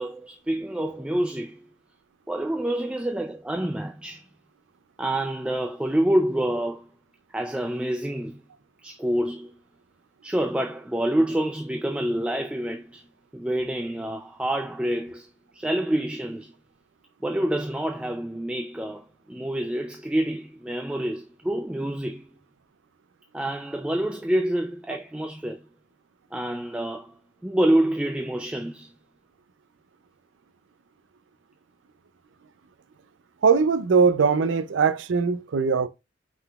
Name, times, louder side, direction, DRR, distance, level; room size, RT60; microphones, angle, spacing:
voice 1, 0.0-1.7 2.3-4.3 5.0-6.9 7.3-8.4 8.8-9.5 10.2-13.0 13.3-16.5 17.2-22.3 23.3-25.6 26.3-28.9, right 1 dB, 5° right, 0.3 m, -27 dB
voice 2, 33.4-35.9, right 5 dB, 75° right, 0.4 m, -21 dB
5.6 x 3.7 x 2.3 m
head